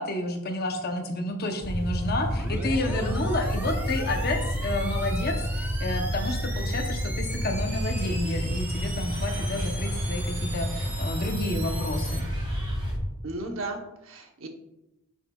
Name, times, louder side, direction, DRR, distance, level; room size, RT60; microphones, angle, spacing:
voice 1, 0.0-12.2, left 2 dB, 45° left, 4 dB, 0.8 m, -30 dB
sound 1, 1.6-13.0, equal, 75° left, 1.8 m, -30 dB
sound 2, 2.2-12.2, right 1 dB, 10° right, 0.6 m, -39 dB
sound 3, 7.6-12.9, right 1 dB, 25° right, 2.0 m, -43 dB
voice 2, 13.2-14.5, right 2 dB, 60° right, 3 dB, 1.0 m, -35 dB
9.8 x 5.6 x 2.4 m, 0.93 s
head